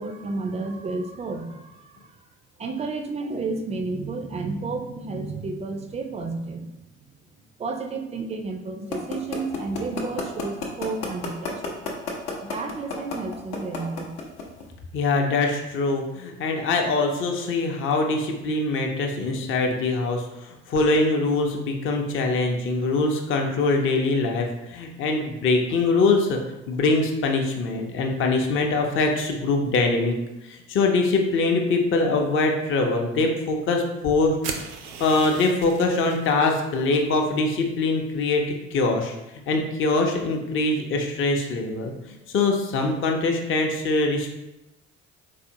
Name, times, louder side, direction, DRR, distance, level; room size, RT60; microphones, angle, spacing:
voice 1, 0.0-2.2 2.6-6.9 7.6-11.8 12.4-14.1, right 3 dB, 20° right, 5 dB, 0.3 m, -31 dB
sound 1, 8.9-14.6, left 5 dB, 70° left, 0.7 m, -29 dB
voice 2, 14.9-30.2 30.4-34.7 35.0-39.1 39.5-44.3, left 3 dB, 35° left, 2 dB, 0.6 m, -23 dB
sound 2, 34.4-36.6, right 6 dB, 75° right, 0.5 m, -37 dB
3.8 x 2.4 x 2.7 m, 0.95 s
figure-of-eight pair, 55°, 35 cm